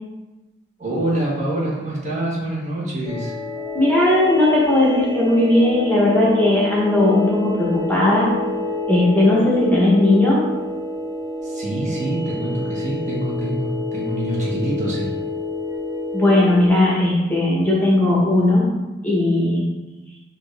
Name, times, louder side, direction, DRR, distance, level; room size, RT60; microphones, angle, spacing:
voice 1, 0.8-3.3 11.4-15.1, right 1 dB, 40° right, -5 dB, 1.2 m, -25 dB
sound 1, 3.0-16.7, left 2 dB, 20° right, 0.7 m, -28 dB
voice 2, 3.7-8.3 8.9-10.4 16.1-18.7 19.0-19.6, left 1 dB, 10° left, -6 dB, 0.8 m, -17 dB
6.0 x 2.6 x 3.3 m, 1.1 s
head